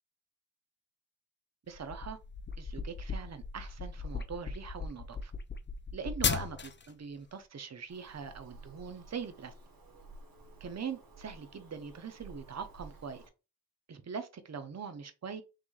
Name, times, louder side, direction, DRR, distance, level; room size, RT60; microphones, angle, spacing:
sound 1, 1.7-6.9, left 5 dB, 35° left, 0.5 m, -36 dB
voice 1, 1.7-2.2 2.6-5.3 5.9-9.5 10.6-13.2 13.9-15.4, right 6 dB, 50° right, 0.8 m, -42 dB
Bird vocalization bird call bird song, 7.9-13.3, right 3 dB, 80° right, 1.5 m, -53 dB
5.8 x 3.2 x 2.5 m
wide cardioid pair, 105°, 35 cm